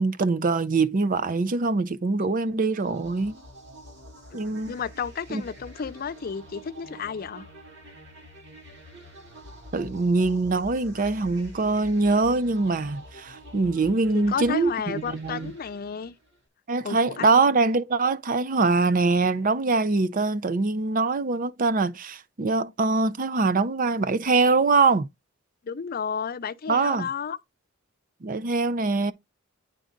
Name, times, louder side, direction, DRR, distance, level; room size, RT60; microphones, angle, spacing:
voice 1, 0.0-3.3 4.3-4.7 5.3-5.4 9.7-15.5 16.7-25.1 26.7-27.1 28.2-29.1, right 3 dB, 40° right, 0.5 m, -23 dB
sound 1, 2.7-16.4, equal, 60° right, 2.3 m, -46 dB
voice 2, 4.3-7.5 14.1-16.1 16.8-17.3 25.7-27.4, left 6 dB, 45° left, 0.5 m, -32 dB
9.2 x 3.8 x 3.8 m
head